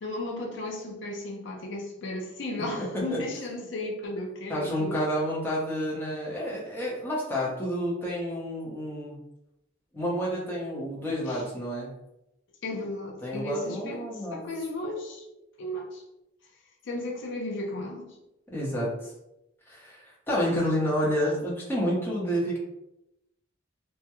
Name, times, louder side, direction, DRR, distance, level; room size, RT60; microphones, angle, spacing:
voice 1, 0.0-5.0 11.3-11.4 12.6-14.0 14.3-15.3 15.6-16.0 16.8-18.2, left 1 dB, 65° left, 0 dB, 0.5 m, -34 dB
voice 2, 2.7-3.2 4.5-9.2 9.9-11.9 13.2-14.4 18.5-19.1 19.7-22.6, equal, 10° left, -6 dB, 0.7 m, -29 dB
2.2 x 2.1 x 2.9 m, 0.88 s
head